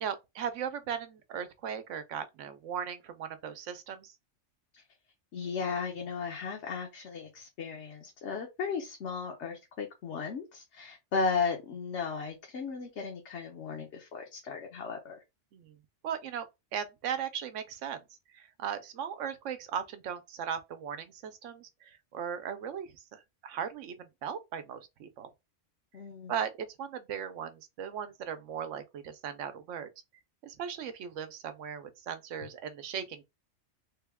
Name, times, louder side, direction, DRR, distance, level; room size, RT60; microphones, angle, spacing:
voice 1, 0.0-4.1 15.5-15.8 16.0-16.5 16.7-18.0 18.3-25.3 26.3-29.9 30.4-33.2, right 8 dB, 80° right, 1.0 m, -38 dB
voice 2, 5.3-15.2 25.9-26.3, left 5 dB, 70° left, 1.1 m, -35 dB
3.4 x 2.3 x 3.4 m
omnidirectional pair, 1.3 m